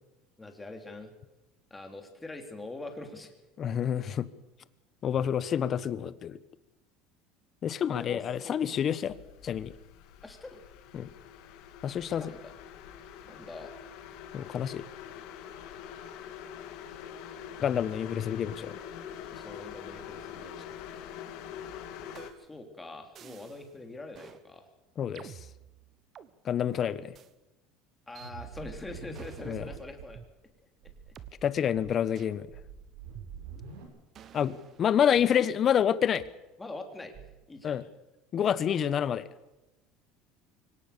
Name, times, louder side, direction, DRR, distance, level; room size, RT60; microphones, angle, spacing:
voice 1, 0.4-1.1 1.7-3.3 7.9-8.9 10.2-10.6 12.2-12.5 13.2-13.7 19.3-20.6 22.4-24.6 28.1-30.2 31.1-31.2 31.6-31.7 36.6-37.1 37.5-37.8, left 2 dB, 10° left, 5 dB, 3.4 m, -44 dB
voice 2, 3.6-4.3 5.0-6.4 7.6-9.2 9.4-9.7 10.9-11.1 11.8-12.3 14.3-14.8 17.6-18.8 25.0-25.3 26.4-27.1 29.5-29.6 31.4-32.5 34.3-36.2 37.6-37.8 38.3-39.3, left 9 dB, 35° left, 16 dB, 1.1 m, -28 dB
sound 1, 9.0-22.3, left 9 dB, 65° left, 2.6 m, -45 dB
sound 2, 22.2-22.6 23.2-23.7 24.1-24.4 25.2-26.3 27.1-27.3 28.2-28.3 29.1-29.6 30.2-30.3 31.2-31.3 32.2-32.4 33.2-33.7 34.2-35.4 36.2-36.3 37.1-37.5, right 9 dB, 40° right, 1.3 m, -51 dB
sound 3, 28.2-30.1 30.4-30.5 30.8-31.3 31.7-33.8, right 6 dB, 90° right, 7.4 m, -45 dB
24.0 x 18.0 x 6.9 m, 1.0 s
supercardioid pair, 135°, 0 cm